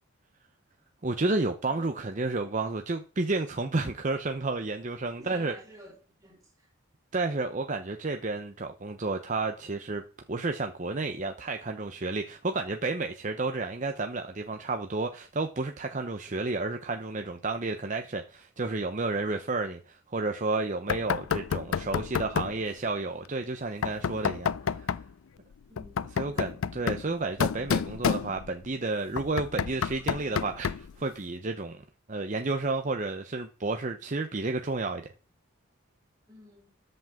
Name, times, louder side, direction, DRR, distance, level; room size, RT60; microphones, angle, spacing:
voice 1, 1.0-5.5 7.1-10.0 10.3-24.9 26.2-31.8 32.1-35.1, right 3 dB, 35° right, 0.7 m, -31 dB
voice 2, 5.2-6.7 25.7-26.5 36.3-36.8, equal, 15° right, 4.3 m, -52 dB
Knock, 20.9-22.6 23.8-25.1 25.8-28.7 29.2-31.0, left 6 dB, 70° left, 0.4 m, -30 dB
13.5 x 7.7 x 3.6 m
head